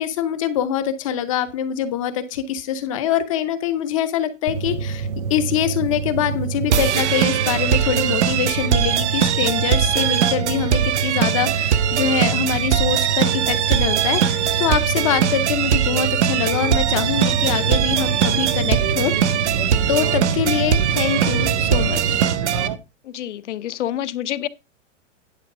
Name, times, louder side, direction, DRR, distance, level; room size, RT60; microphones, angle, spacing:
voice 1, 0.0-19.1 19.9-22.2, left 9 dB, 25° left, 0.6 m, -24 dB
sound 1, 4.5-22.3, right 5 dB, 85° right, 0.8 m, -27 dB
sound 2, 6.7-22.7, right 9 dB, 60° right, 1.0 m, -21 dB
sound 3, 16.9-22.8, right 6 dB, 30° right, 0.5 m, -28 dB
voice 2, 23.0-24.5, left 12 dB, 65° left, 0.8 m, -28 dB
10.5 x 4.5 x 5.9 m
hypercardioid pair, 165°, 38 cm